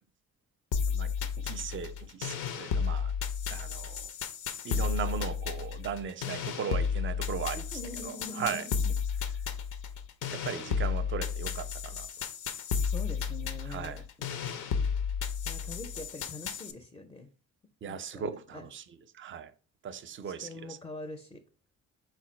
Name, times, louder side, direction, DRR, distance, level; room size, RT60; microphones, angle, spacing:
sound 1, 0.7-16.7, left 6 dB, 75° left, 0.6 m, -33 dB
voice 1, 0.9-3.1 3.5-4.1 4.6-7.6 8.0-8.7 10.3-12.1 13.7-14.0 17.8-18.8 19.1-19.5 19.8-20.8, right 7 dB, 40° right, 0.5 m, -37 dB
voice 2, 7.5-8.9 12.9-14.3 15.4-17.3 17.9-18.3 18.5-18.7 20.2-21.4, left 2 dB, 15° left, 0.4 m, -44 dB
4.4 x 2.2 x 4.2 m
cardioid pair, 90°, 30 cm